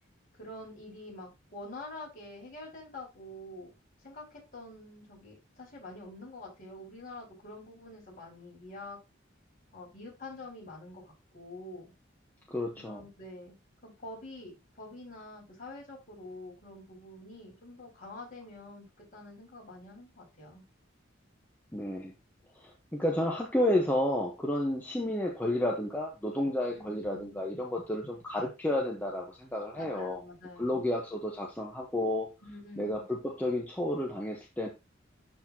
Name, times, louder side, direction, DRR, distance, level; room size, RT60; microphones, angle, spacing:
voice 1, 0.4-3.7 4.0-9.0 9.7-11.9 12.7-13.5 13.8-20.6 26.7-27.4 29.7-30.8 32.4-33.0, left 2 dB, 45° left, -4 dB, 4.8 m, -46 dB
voice 2, 12.5-13.0 21.7-22.1 22.6-30.2 30.6-32.3 32.8-34.7, left 1 dB, 10° left, -1 dB, 1.1 m, -31 dB
12.0 x 4.3 x 2.9 m, 0.25 s
head